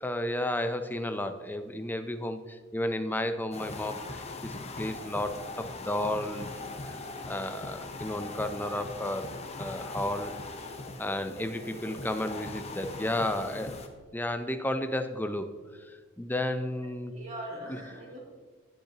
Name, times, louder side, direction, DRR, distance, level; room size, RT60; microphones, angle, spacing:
voice 1, 0.0-6.5 7.3-9.3 9.6-10.3 11.0-13.8 14.1-15.5 16.2-17.1 17.7-17.8, left 1 dB, 10° left, 8 dB, 0.6 m, -32 dB
sound 1, 3.5-13.9, left 3 dB, 30° left, 0.9 m, -40 dB
voice 2, 11.3-12.1 17.1-18.2, right 1 dB, 35° right, -4 dB, 2.7 m, -42 dB
18.0 x 6.6 x 2.9 m, 1.4 s
head